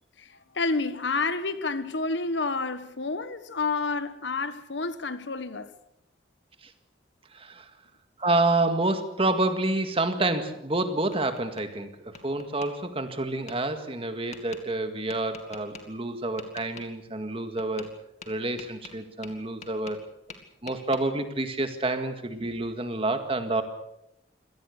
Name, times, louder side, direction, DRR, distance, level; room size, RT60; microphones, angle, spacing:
voice 1, 0.2-5.7, left 3 dB, 70° left, 1.3 m, -29 dB
voice 2, 7.3-7.6 8.2-17.9 18.3-20.0 20.6-23.6, right 2 dB, 30° right, 2.0 m, -28 dB
Tap, 10.6-11.7 12.1-12.7 13.5-13.6 14.3-14.6 15.1-15.8 16.4-16.9 17.6-17.9 18.2-20.0 20.3-21.0, left 4 dB, 40° left, 2.4 m, -45 dB
25.5 x 18.0 x 6.6 m
head